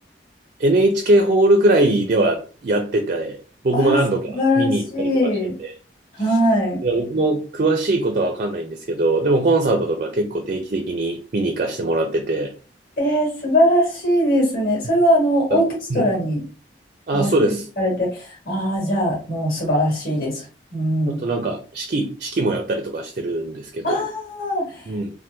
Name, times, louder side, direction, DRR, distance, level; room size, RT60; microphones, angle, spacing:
voice 1, 0.6-3.4 3.6-5.3 5.6-5.7 6.8-12.5 15.5-15.6 15.9-16.0 17.1-17.6 21.1-24.0 24.9-25.1, right 2 dB, 50° right, 5 dB, 0.4 m, -21 dB
voice 2, 4.3-5.5 6.1-6.8 13.0-16.4 17.1-17.3 17.8-20.5 20.7-21.2 23.8-25.0, equal, 50° left, -2 dB, 1.5 m, -21 dB
2.9 x 2.2 x 3.3 m, 0.36 s
head